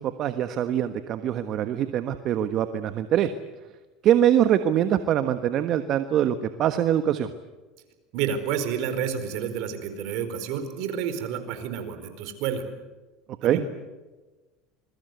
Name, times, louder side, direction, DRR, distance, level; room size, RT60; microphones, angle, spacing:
voice 1, 0.0-3.3 4.0-7.3 13.4-13.6, right 10 dB, 50° right, 9 dB, 1.3 m, -23 dB
voice 2, 8.1-12.6 13.4-13.6, right 8 dB, 65° right, 9 dB, 4.5 m, -30 dB
27.0 x 22.0 x 8.1 m, 1.2 s
supercardioid pair, 110°, 0 cm